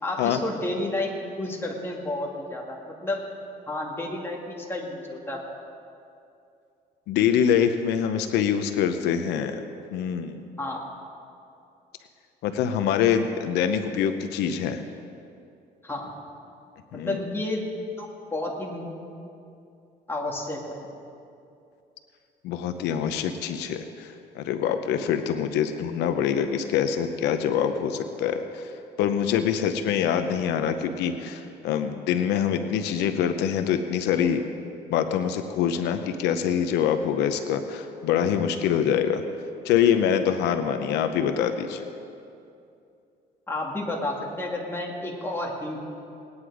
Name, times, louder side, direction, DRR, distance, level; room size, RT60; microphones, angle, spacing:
voice 1, 0.0-1.1 1.4-3.2 3.7-5.4 10.6-10.8 15.8-16.1 17.0-17.6 18.0-18.9 20.1-20.9 43.5-45.8, left 2 dB, 15° left, -1 dB, 2.3 m, -31 dB
voice 2, 7.1-9.6 9.9-10.4 12.4-14.8 16.9-17.2 22.4-28.7 29.0-34.4 34.9-39.2 39.6-41.8, left 8 dB, 85° left, 8 dB, 0.8 m, -25 dB
19.5 x 9.7 x 4.9 m, 2.6 s
cardioid pair, 110°, 17 cm